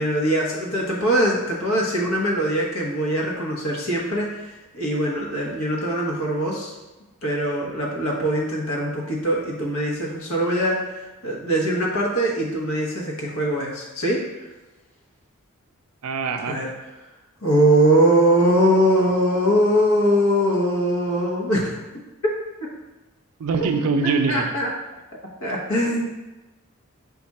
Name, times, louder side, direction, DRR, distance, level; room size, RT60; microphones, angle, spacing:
voice 1, 0.0-6.7 7.2-14.2 16.5-16.7 17.4-21.8 24.0-24.7 25.4-26.1, right 1 dB, 70° left, -2 dB, 1.1 m, -22 dB
voice 2, 16.0-16.6 23.4-24.5, right 4 dB, 80° right, 7 dB, 0.4 m, -23 dB
5.1 x 2.4 x 4.1 m, 1.1 s
head